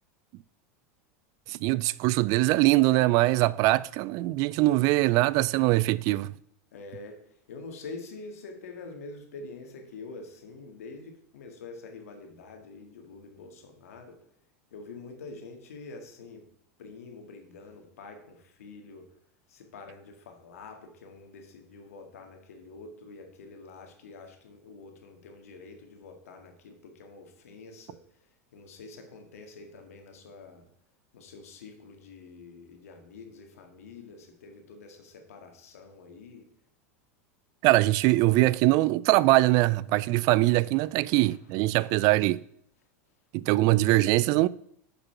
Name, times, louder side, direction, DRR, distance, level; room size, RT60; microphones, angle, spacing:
voice 1, 1.5-6.3 37.6-42.4 43.3-44.5, right 19 dB, 55° right, 0.4 m, -22 dB
voice 2, 6.7-14.2 14.7-16.4 16.8-19.0 19.5-28.0 28.5-30.7 31.1-36.5 41.3-41.6 41.9-42.0, left 3 dB, 85° left, 1.9 m, -46 dB
6.8 x 5.8 x 5.8 m
hypercardioid pair, 105°, 8 cm